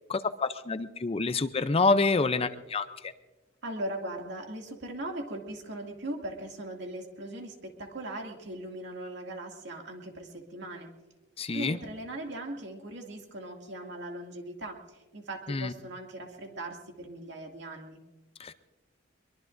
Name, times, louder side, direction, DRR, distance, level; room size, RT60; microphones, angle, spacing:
voice 1, 0.1-3.1 11.4-11.8 15.5-15.7 18.4-18.5, left 3 dB, 30° left, 12 dB, 0.5 m, -27 dB
voice 2, 3.6-10.9 11.5-14.8 15.1-18.0, right 1 dB, 65° right, 1 dB, 2.4 m, -39 dB
23.0 x 22.5 x 2.6 m, 1.2 s
head